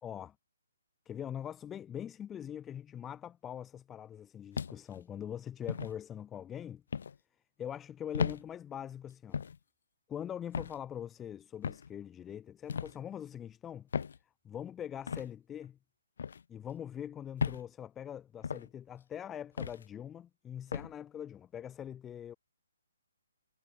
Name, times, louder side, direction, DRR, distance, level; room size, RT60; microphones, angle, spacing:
voice 1, 0.0-0.3 1.0-6.8 7.6-9.4 10.1-13.9 14.4-15.8 16.5-22.3, left 9 dB, 15° left, 1.4 m, -43 dB
sound 1, 4.5-5.0 5.7-5.9 6.9-7.2 8.1-8.4 9.3-9.6 10.5-10.8 11.6-11.9 12.7-13.0 13.9-14.2 15.1-15.3 16.2-16.4 17.4-17.7 18.4-18.7 19.6-19.8 20.7-20.9, left 6 dB, 55° left, 1.1 m, -35 dB
figure-of-eight pair, 135°, 0 cm